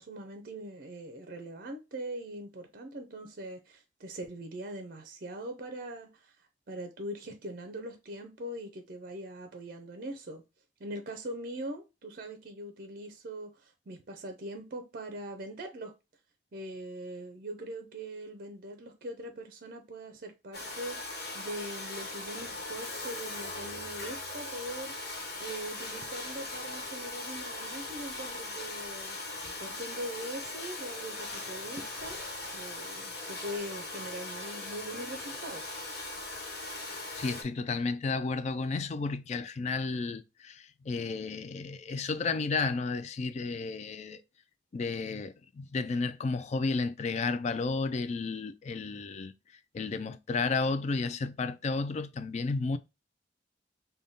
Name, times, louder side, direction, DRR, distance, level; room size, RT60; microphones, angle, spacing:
voice 1, 0.0-6.4 6.7-10.4 10.8-15.9 16.5-29.2 29.6-32.2 32.5-35.6, right 1 dB, 50° right, 0.5 m, -42 dB
Domestic sounds home sounds, 20.5-37.4, left 2 dB, 60° left, 1.1 m, -39 dB
voice 2, 37.1-44.2 44.7-49.3 49.7-52.8, left 4 dB, 40° left, 0.3 m, -32 dB
3.5 x 2.2 x 3.8 m
head